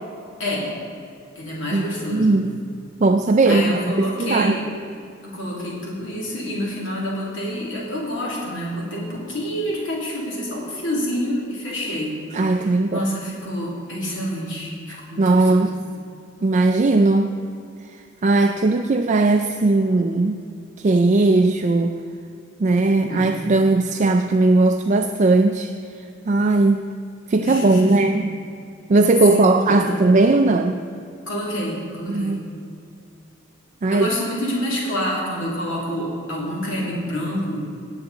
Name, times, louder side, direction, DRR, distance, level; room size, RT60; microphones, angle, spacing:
voice 1, 0.4-0.7 1.4-2.4 3.5-4.6 5.2-12.2 12.6-15.7 22.9-23.3 27.4-28.1 29.3-30.0 31.3-32.4 33.9-37.7, equal, 70° left, -4 dB, 2.5 m, -27 dB
voice 2, 1.7-2.6 3.0-4.6 12.3-13.1 14.9-15.8 16.4-17.4 17.8-20.4 20.8-22.0 22.6-26.9 27.3-28.2 28.9-30.8 32.1-32.4 33.8-34.1, right 2 dB, 35° right, 6 dB, 0.4 m, -18 dB
18.5 x 8.1 x 3.8 m, 2.5 s
head